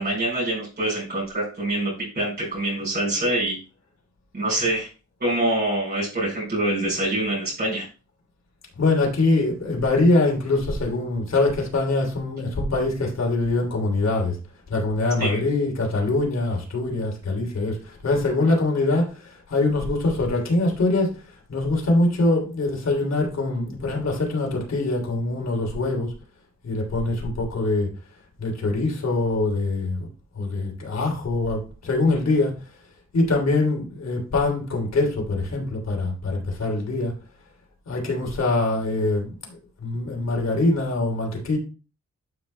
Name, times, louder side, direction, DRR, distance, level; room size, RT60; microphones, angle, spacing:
voice 1, 0.0-3.6 4.3-4.9 5.2-7.9 15.2-15.4, right 1 dB, 35° right, -7 dB, 4.7 m, -25 dB
voice 2, 8.8-14.4 14.7-21.2 21.5-26.1 26.6-27.9 28.4-30.1 30.3-32.5 33.1-37.1 37.9-41.6, left 2 dB, 65° left, 0 dB, 3.1 m, -23 dB
12.0 x 6.0 x 2.2 m, 0.34 s
wide cardioid pair, 145°, 29 cm